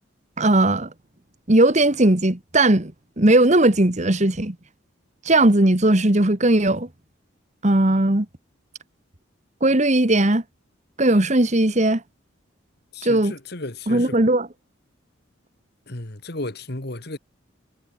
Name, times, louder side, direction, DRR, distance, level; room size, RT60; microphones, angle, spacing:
voice 1, 0.4-0.9 1.5-4.5 5.2-6.9 7.6-8.2 9.6-10.4 11.0-12.0 13.0-13.3 13.9-14.5, right 1 dB, 35° right, 1.6 m, -18 dB
voice 2, 12.9-14.2 15.9-17.2, left 2 dB, 50° left, 2.1 m, -33 dB
head